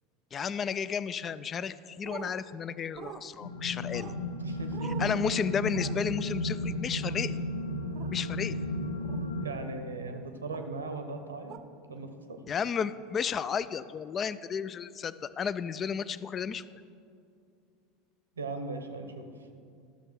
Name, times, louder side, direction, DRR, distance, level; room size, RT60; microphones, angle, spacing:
voice 1, 0.3-4.1 5.0-7.4 8.1-8.6 12.5-16.6, left 6 dB, 30° left, 16 dB, 0.3 m, -33 dB
sound 1, 2.0-2.3 3.0-3.2 3.9-4.2 4.7-5.2 5.7-6.0 8.0-8.1 9.0-9.3 10.5-10.7 11.5-11.6, right 10 dB, 40° right, 0.5 m, -43 dB
sound 2, 3.4-9.5, left 1 dB, 80° left, 0.6 m, -34 dB
voice 2, 4.4-5.1 9.4-11.6 11.9-12.4 18.4-19.3, right 3 dB, 75° right, 7 dB, 0.8 m, -38 dB
12.5 x 6.8 x 4.6 m, 2.4 s
figure-of-eight pair, 75°, 0 cm